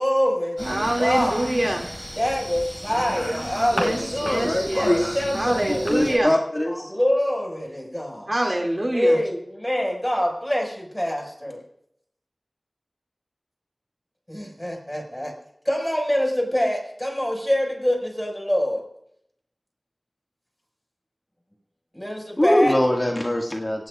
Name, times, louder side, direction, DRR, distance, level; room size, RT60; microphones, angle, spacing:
voice 1, 0.0-1.4 2.2-6.3 6.9-8.3 8.9-11.6 14.3-15.3 15.6-18.8 21.9-22.8, equal, 15° left, 2 dB, 5.7 m, -25 dB
sound 1, 0.6-6.2, equal, 5° right, 6.5 m, -32 dB
voice 2, 0.6-1.9 3.7-6.3 8.3-9.2, right 1 dB, 40° right, 0 dB, 2.5 m, -25 dB
voice 3, 4.3-5.0 5.9-6.9 22.4-23.9, left 1 dB, 35° left, -1 dB, 2.0 m, -22 dB
25.0 x 18.5 x 2.5 m, 0.74 s
wide cardioid pair, 45°, 0 cm